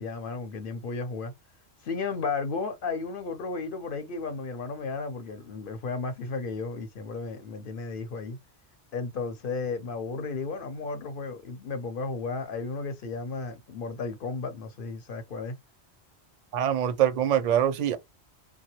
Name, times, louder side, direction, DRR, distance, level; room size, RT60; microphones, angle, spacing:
voice 1, 0.0-1.3 1.8-8.4 8.9-15.6, left 4 dB, 60° left, 0.7 m, -34 dB
voice 2, 16.5-18.0, right 10 dB, 55° right, 0.5 m, -24 dB
3.1 x 2.3 x 2.9 m
omnidirectional pair, 1.1 m